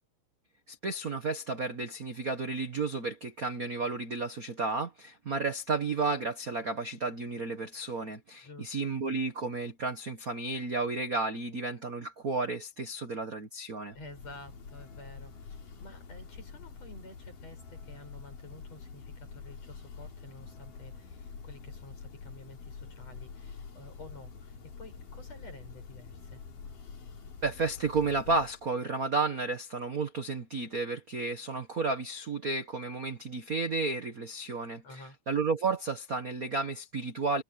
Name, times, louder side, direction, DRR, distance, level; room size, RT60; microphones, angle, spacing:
voice 1, 0.7-13.9 27.4-34.8 35.3-37.4, right 3 dB, 60° right, 0.9 m, -32 dB
voice 2, 8.4-8.8 13.9-26.4 34.8-35.2, left 2 dB, 45° left, 9.0 m, -51 dB
Church bell, 13.8-28.8, left 5 dB, 65° left, 5.2 m, -46 dB
omnidirectional pair, 4.1 m